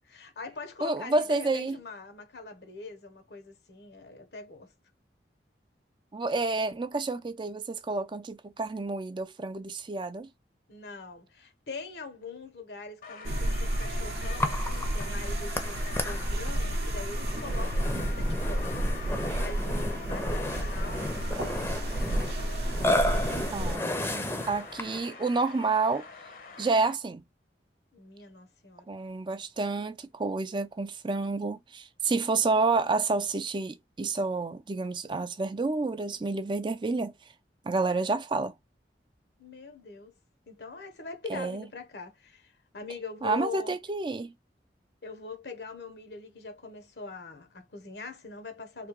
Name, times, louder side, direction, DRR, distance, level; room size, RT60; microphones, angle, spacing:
voice 1, 0.0-4.7 10.7-22.1 23.1-23.9 27.9-28.9 39.4-40.1 40.5-43.8 45.0-48.9, left 4 dB, 70° left, 1.0 m, -43 dB
voice 2, 0.8-1.8 6.1-10.3 23.5-26.1 26.6-27.2 28.9-37.1 37.6-38.5 41.3-41.6 43.2-44.3, right 3 dB, 25° right, 0.4 m, -29 dB
sound 1, 13.0-26.9, left 5 dB, 55° left, 0.8 m, -45 dB
sound 2, 13.2-23.8, right 1 dB, 60° right, 0.7 m, -31 dB
Burping eructation, 14.4-25.1, left 1 dB, 15° left, 0.6 m, -33 dB
3.4 x 2.8 x 3.0 m
head